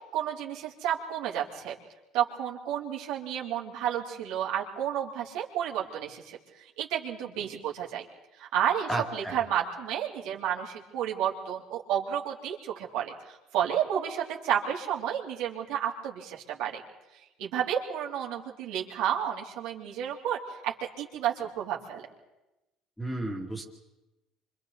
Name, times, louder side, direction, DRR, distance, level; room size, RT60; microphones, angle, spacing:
voice 1, 0.1-1.7 2.1-6.4 6.8-8.0 8.4-16.8 17.4-22.0, right 10 dB, 75° right, -2 dB, 3.2 m, -31 dB
voice 2, 8.9-9.4 23.0-23.6, right 2 dB, 5° left, 1 dB, 2.5 m, -32 dB
28.0 x 26.0 x 4.1 m, 0.98 s
cardioid pair, 155°, 0 cm